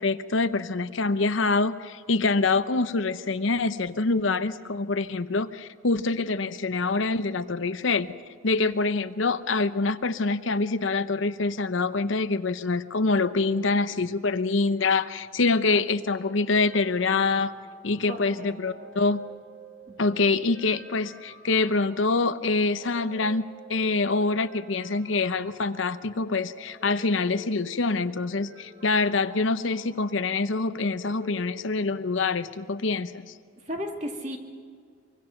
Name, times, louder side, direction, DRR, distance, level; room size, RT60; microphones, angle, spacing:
voice 1, 0.0-8.1 8.4-17.5 17.8-19.2 20.0-33.3, left 3 dB, 80° left, 12 dB, 0.8 m, -25 dB
I am dreaming or Final Fantasy menu kinda thing, 16.3-32.3, right 1 dB, 55° right, 6.3 m, -50 dB
voice 2, 18.1-18.9 19.9-20.0 33.6-34.4, equal, 35° right, 3 dB, 2.4 m, -35 dB
24.5 x 24.5 x 5.9 m, 2.2 s
head